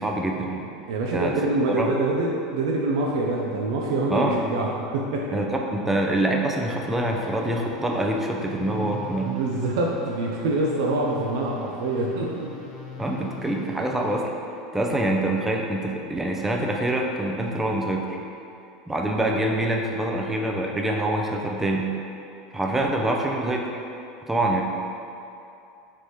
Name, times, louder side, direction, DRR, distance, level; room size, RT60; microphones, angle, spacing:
voice 1, 0.0-0.7 1.1-1.3 1.7-1.9 4.1-4.4 5.3-9.4 13.0-14.3 14.7-18.2 18.9-21.9 22.5-23.7 24.3-24.6, right 1 dB, 10° right, 0 dB, 0.5 m, -25 dB
voice 2, 0.9-5.6 9.2-12.6, right 2 dB, 75° right, -1 dB, 0.4 m, -25 dB
sound 1, 6.8-14.3, left 5 dB, 55° left, 0.6 m, -41 dB
3.5 x 3.2 x 4.1 m, 2.7 s
hypercardioid pair, 100°, 3 cm